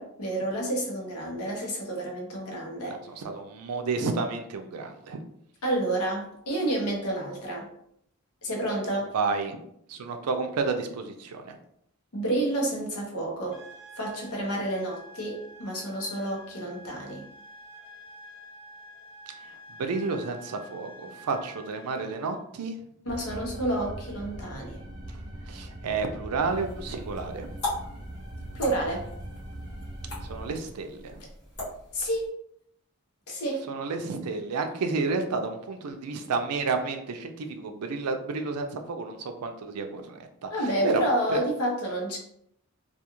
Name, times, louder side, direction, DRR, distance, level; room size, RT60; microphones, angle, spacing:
voice 1, 0.0-3.0 5.6-7.7 8.4-9.1 12.1-13.6 14.0-17.3 23.1-24.8 28.5-29.1 31.9-32.3 33.3-33.6 40.5-42.2, right 1 dB, 80° left, 0 dB, 0.8 m, -29 dB
voice 2, 2.8-5.2 9.1-9.6 9.9-11.6 19.4-22.8 25.5-27.5 30.2-31.2 33.7-41.0 41.3-41.4, right 4 dB, 90° right, 6 dB, 0.4 m, -31 dB
sound 1, 13.5-22.4, right 1 dB, 25° left, 0.9 m, -48 dB
sound 2, 23.1-30.5, right 1 dB, 15° right, 0.5 m, -41 dB
sound 3, 26.4-32.3, left 2 dB, 50° left, 1.2 m, -40 dB
2.4 x 2.3 x 2.9 m, 0.72 s
head